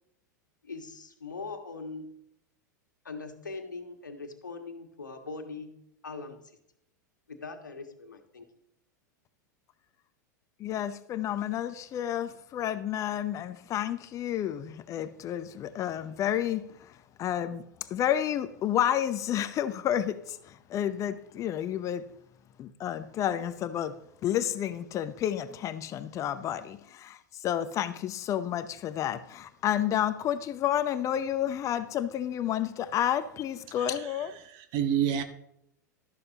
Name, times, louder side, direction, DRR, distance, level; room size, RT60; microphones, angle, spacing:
voice 1, 0.6-2.1 3.0-5.8 6.0-6.4 7.3-8.5, left 3 dB, 80° left, 1.7 m, -41 dB
voice 2, 10.6-16.6 17.2-17.6 17.9-22.0 22.6-23.9 24.2-27.2 27.4-34.3, left 10 dB, 30° left, 0.8 m, -30 dB
voice 3, 33.7-35.2, right 9 dB, 45° right, 1.5 m, -30 dB
13.0 x 12.0 x 2.9 m
figure-of-eight pair, 90°, 10 cm